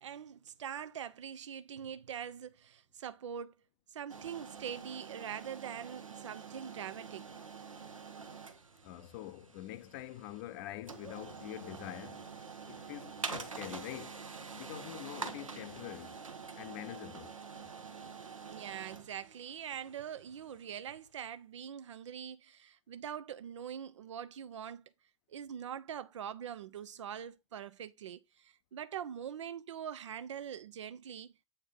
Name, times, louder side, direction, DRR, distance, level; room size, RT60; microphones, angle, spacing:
voice 1, 0.0-3.6 3.9-7.3 18.5-24.8 25.3-31.3, right 8 dB, 65° right, 0.6 m, -43 dB
sound 1, 4.1-21.0, right 5 dB, 80° right, 1.0 m, -47 dB
voice 2, 8.8-12.3 12.7-14.2 14.5-16.2 16.6-17.7, left 14 dB, 40° left, 0.6 m, -45 dB
8.0 x 4.4 x 3.7 m
figure-of-eight pair, 95°, 17 cm